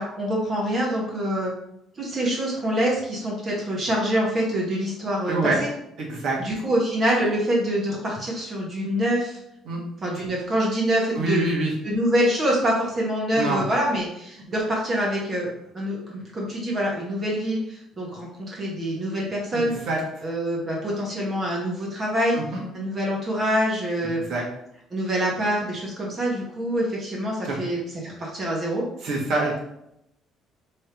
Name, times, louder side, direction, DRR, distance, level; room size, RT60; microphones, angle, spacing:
voice 1, 0.0-1.5 2.0-5.7 6.4-9.4 10.0-11.4 11.8-15.5 15.7-19.7 20.2-22.4 22.7-24.2 24.9-28.9, equal, 25° right, -3 dB, 0.9 m, -25 dB
voice 2, 5.3-5.6 6.0-6.4 9.6-9.8 11.1-11.7 13.3-13.6 19.5-20.0 22.3-22.6 24.2-24.4 27.4-27.6 29.0-29.6, right 2 dB, 50° right, -3 dB, 1.3 m, -26 dB
3.3 x 2.6 x 4.4 m, 0.79 s
cardioid pair, 170°, 0 cm